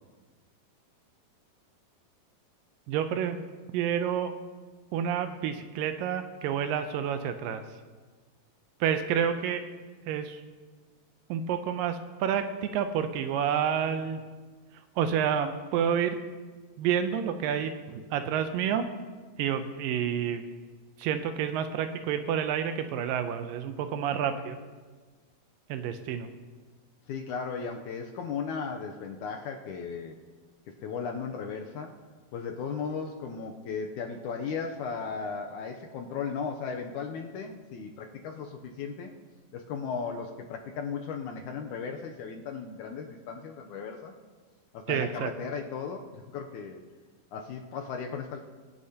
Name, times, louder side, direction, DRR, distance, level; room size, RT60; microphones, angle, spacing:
voice 1, 2.9-3.4 3.7-4.3 4.9-7.6 8.8-9.6 10.1-10.4 11.3-14.2 15.0-16.2 16.8-18.9 19.4-20.4 21.0-24.6 25.7-26.3 44.9-45.3, right 8 dB, 80° right, 9 dB, 2.3 m, -29 dB
voice 2, 27.1-30.2 30.8-32.0 32.3-39.1 39.5-44.1 44.7-46.8 47.3-48.4, left 5 dB, 75° left, 3 dB, 1.9 m, -36 dB
23.0 x 9.7 x 2.9 m, 1.4 s
omnidirectional pair, 4.1 m